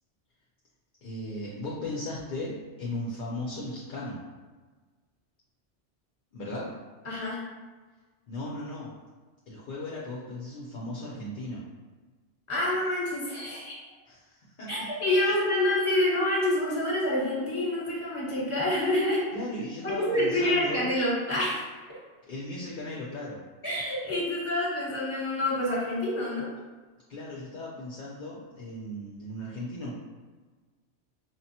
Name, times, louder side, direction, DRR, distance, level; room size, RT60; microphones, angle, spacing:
voice 1, 1.0-4.2 6.3-6.7 8.3-8.9 9.5-11.6 14.1-14.7 15.2-15.4 19.3-20.9 22.3-23.4 27.1-29.9, left 1 dB, 55° left, -5 dB, 0.7 m, -37 dB
voice 2, 7.0-7.4 12.5-13.8 14.7-19.2 19.8-21.6 23.6-26.5, left 1 dB, 25° left, -7 dB, 1.3 m, -27 dB
5.8 x 2.1 x 2.8 m, 1.3 s
omnidirectional pair, 1.2 m